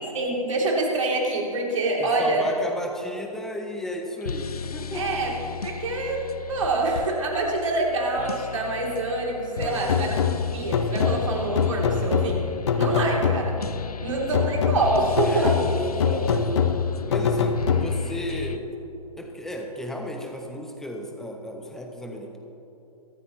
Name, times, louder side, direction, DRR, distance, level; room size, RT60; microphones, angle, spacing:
voice 1, 0.0-2.5 4.9-5.3 5.6-10.2 10.5-12.4 12.8-13.5 14.0-15.5 16.3-16.4, right 2 dB, 55° right, -1 dB, 3.2 m, -26 dB
voice 2, 2.0-5.4 9.6-10.1 13.0-13.2 15.2-16.7 17.1-18.7 19.2-22.4, left 1 dB, ahead, 2 dB, 1.0 m, -34 dB
sound 1, 4.2-18.6, left 6 dB, 75° left, 0.6 m, -35 dB
sound 2, 9.9-13.8 14.3-18.2, left 6 dB, 45° left, 0.9 m, -25 dB
23.5 x 9.6 x 3.1 m, 2.9 s
figure-of-eight pair, 130°, 19 cm